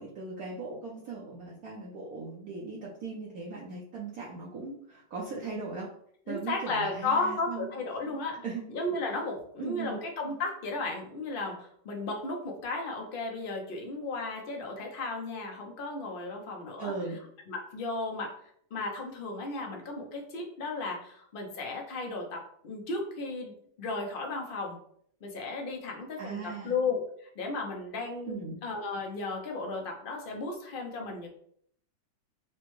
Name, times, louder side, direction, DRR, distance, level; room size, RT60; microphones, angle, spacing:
voice 1, 0.0-5.9 6.3-7.7 8.3-8.6 9.6-10.0 16.8-17.2 26.2-26.7 28.2-28.6, right 4 dB, 65° right, -3 dB, 1.0 m, -38 dB
voice 2, 6.3-8.4 8.7-16.9 17.5-18.3 18.7-23.5 23.8-24.8 25.2-27.0 27.4-31.3, left 3 dB, 70° left, 1 dB, 0.5 m, -34 dB
5.8 x 2.1 x 3.1 m, 0.65 s
omnidirectional pair, 2.0 m